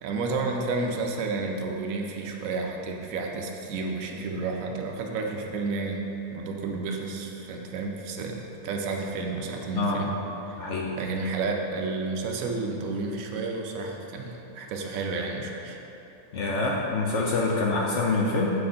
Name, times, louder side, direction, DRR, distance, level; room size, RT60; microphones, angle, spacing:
voice 1, 0.0-6.0 6.3-10.1 10.6-10.7 11.0-15.8, right 3 dB, 65° right, 2 dB, 0.9 m, -31 dB
voice 2, 9.7-10.0 10.6-10.9 16.3-18.5, left 3 dB, 70° left, -2 dB, 0.7 m, -26 dB
6.8 x 4.2 x 3.7 m, 2.9 s
omnidirectional pair, 1.8 m